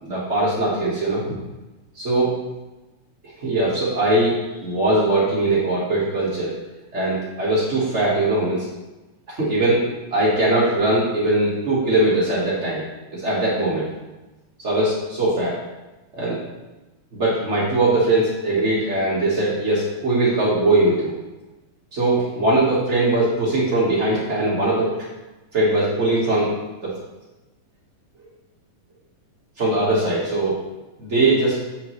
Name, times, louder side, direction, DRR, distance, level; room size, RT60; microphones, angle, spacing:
voice 1, 0.0-1.2 1.9-2.3 3.2-6.6 6.9-8.7 9.3-9.9 10.1-12.8 13.1-13.9 14.6-15.6 16.1-16.4 17.1-21.1 21.9-24.9 25.5-26.5 26.8-26.9 29.6-30.6 31.0-31.6, right 2 dB, 90° right, -8 dB, 0.6 m, -20 dB
8.5 x 5.9 x 3.1 m, 1.1 s
omnidirectional pair, 3.8 m